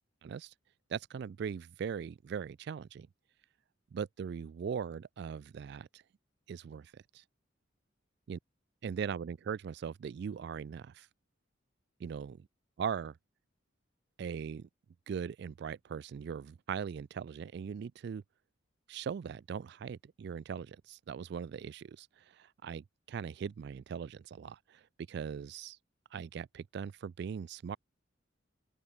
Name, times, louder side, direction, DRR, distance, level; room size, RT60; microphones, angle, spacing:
voice 1, 0.2-0.5 0.9-3.1 3.9-6.0 6.5-7.2 8.3-8.4 8.8-11.1 12.0-12.4 12.8-13.1 14.2-14.7 15.1-18.2 18.9-22.1 22.4-24.8 25.1-25.8 26.1-27.8, right 7 dB, 60° right, 0.3 m, -40 dB
open air
head